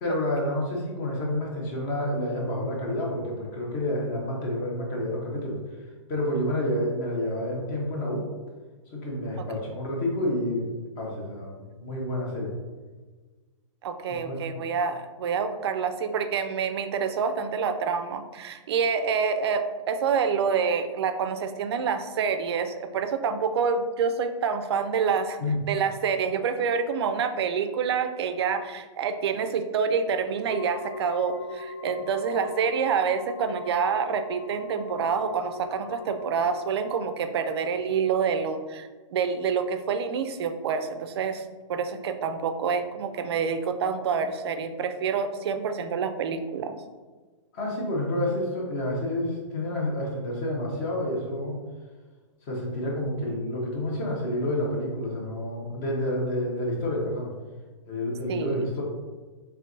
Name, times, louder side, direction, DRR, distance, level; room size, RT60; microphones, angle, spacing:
voice 1, 0.0-5.6 6.1-8.2 8.9-10.7 11.0-12.5 14.2-14.6 25.4-25.6 47.5-51.6 52.5-57.3 57.9-58.8, left 1 dB, 30° left, -2 dB, 0.9 m, -29 dB
voice 2, 13.8-25.4 25.7-41.4 41.7-46.7 58.3-58.5, right 6 dB, 50° right, 9 dB, 0.4 m, -27 dB
sound 1, 30.5-37.0, left 2 dB, 65° left, 0.7 m, -40 dB
4.4 x 3.4 x 2.6 m, 1.4 s
hypercardioid pair, 155°, 17 cm